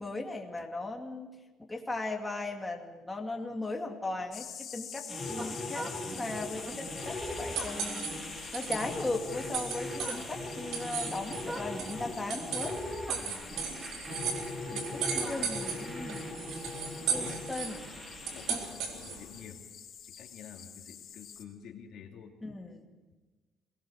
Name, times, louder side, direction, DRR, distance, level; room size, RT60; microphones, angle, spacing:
voice 1, 0.0-5.9 6.2-8.1 8.5-12.8 14.7-16.3 17.1-17.8 22.4-22.9, left 2 dB, 10° left, 1 dB, 2.5 m, -37 dB
sound 1, 4.3-21.4, left 8 dB, 55° left, 2.5 m, -47 dB
sound 2, 5.1-18.6, left 1 dB, 20° right, 4.5 m, -40 dB
sound 3, 6.5-19.3, right 6 dB, 85° right, 4.0 m, -38 dB
voice 2, 14.7-15.6 17.0-17.4 18.3-19.6 20.1-22.3, left 7 dB, 75° left, 2 dB, 2.7 m, -49 dB
22.5 x 19.0 x 6.5 m, 1.3 s
cardioid pair, 115°, 0 cm